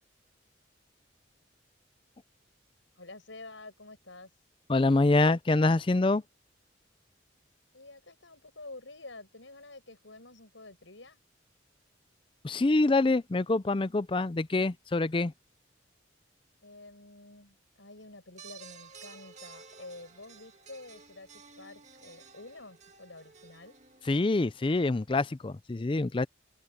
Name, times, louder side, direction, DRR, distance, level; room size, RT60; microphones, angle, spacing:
voice 1, 3.0-4.3 7.7-11.2 16.6-21.3 21.6-23.8, left 2 dB, 75° left, 6.1 m, -49 dB
voice 2, 4.7-6.2 12.4-15.3 24.1-26.3, left 2 dB, 25° left, 0.4 m, -25 dB
sound 1, 18.4-24.7, right 5 dB, 35° right, 2.0 m, -53 dB
open air
head